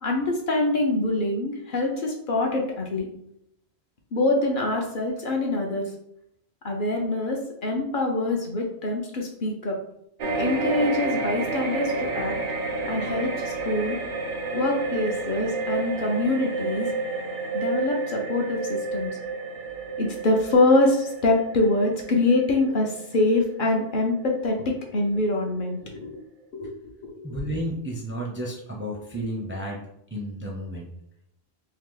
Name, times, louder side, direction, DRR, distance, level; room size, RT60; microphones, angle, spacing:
voice 1, 0.0-3.1 4.1-5.9 6.6-9.8 10.4-12.4 12.8-14.0 14.5-16.9 17.5-19.2 20.0-24.6 24.9-26.2 26.5-27.4, left 2 dB, 60° left, 1 dB, 0.7 m, -25 dB
sound 1, 10.2-24.8 25.2-25.3, right 3 dB, 60° right, 0.6 m, -30 dB
voice 2, 27.2-29.8 30.1-30.9, equal, 15° right, -1 dB, 0.4 m, -32 dB
2.8 x 2.7 x 3.7 m, 0.77 s
omnidirectional pair, 1.1 m